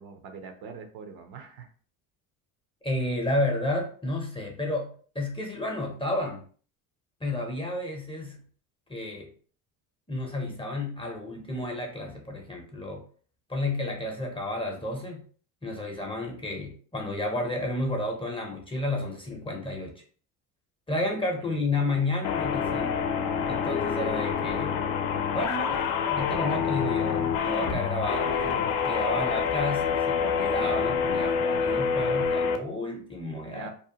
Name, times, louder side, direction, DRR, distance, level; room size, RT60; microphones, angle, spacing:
voice 1, 0.0-1.7 21.4-21.6 33.5-33.7, right 5 dB, 65° right, 6 dB, 0.7 m, -43 dB
voice 2, 2.8-6.4 7.2-8.4 8.9-9.3 10.1-13.0 13.5-15.2 15.6-19.9 20.9-23.0 23.5-24.8 25.3-33.7, left 1 dB, 15° left, 1 dB, 0.5 m, -31 dB
sound 1, 22.2-32.6, left 6 dB, 60° left, 0.5 m, -27 dB
2.6 x 2.1 x 2.7 m, 0.43 s
cardioid pair, 110°, 41 cm